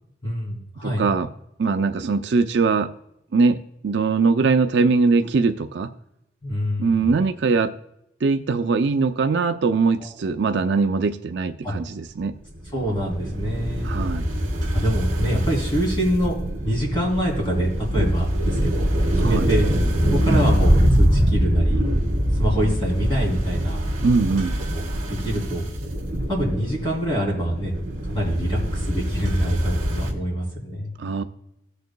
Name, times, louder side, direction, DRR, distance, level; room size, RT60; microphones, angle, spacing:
voice 1, 0.2-1.1 6.4-7.1 10.0-10.1 11.6-11.7 12.7-13.9 14.7-16.3 16.6-18.9 19.1-19.7 20.1-21.8 22.4-23.8 24.7-24.8 25.1-25.6 26.3-27.7 28.0-30.9, equal, 25° left, -2 dB, 3.1 m, -25 dB
voice 2, 0.8-1.3 1.6-2.9 3.3-3.6 3.8-5.9 6.8-7.7 8.2-12.3 13.8-14.3 19.2-19.5 24.0-24.6 31.0-31.2, right 4 dB, 55° right, 8 dB, 0.4 m, -21 dB
sound 1, 12.5-30.1, equal, 40° right, 1.9 m, -23 dB
17.0 x 6.6 x 2.2 m, 0.82 s
head